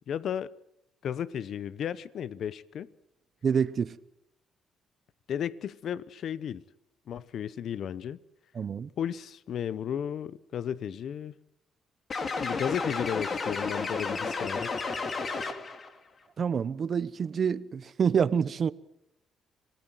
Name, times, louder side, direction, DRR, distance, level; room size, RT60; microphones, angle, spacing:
voice 1, 0.1-0.5 1.0-2.9 5.3-6.6 7.1-8.2 9.0-11.3 12.4-14.7, left 9 dB, 65° left, 0.9 m, -34 dB
voice 2, 3.4-4.0 8.5-8.9 16.4-18.7, right 7 dB, 50° right, 1.0 m, -27 dB
sound 1, 12.1-15.9, left 4 dB, 45° left, 2.8 m, -32 dB
27.0 x 18.0 x 7.8 m
cardioid pair, 90°, 0 cm